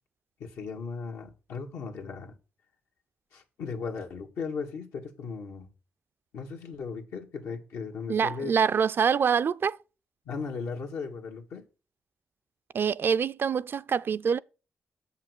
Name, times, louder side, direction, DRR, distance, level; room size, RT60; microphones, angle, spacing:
voice 1, 0.4-2.3 3.3-5.7 6.3-8.5 10.2-11.6, left 5 dB, 85° left, 1.5 m, -37 dB
voice 2, 8.1-9.8 12.7-14.4, right 6 dB, 55° right, 0.4 m, -25 dB
7.1 x 5.7 x 6.2 m
cardioid pair, 70°, 4 cm